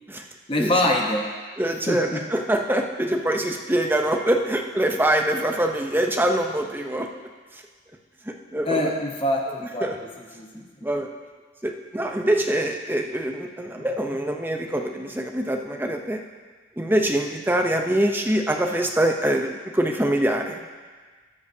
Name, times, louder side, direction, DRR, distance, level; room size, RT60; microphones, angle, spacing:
voice 1, 0.5-1.3 1.9-2.2 8.6-9.9 10.2-10.7 13.8-13.9, left 1 dB, 25° left, 0 dB, 1.0 m, -25 dB
voice 2, 1.6-7.1 8.3-8.8 9.8-10.0 10.8-11.1 11.6-16.2 16.8-20.6, right 1 dB, 10° right, 3 dB, 0.7 m, -24 dB
20.0 x 7.7 x 2.8 m, 1.4 s
head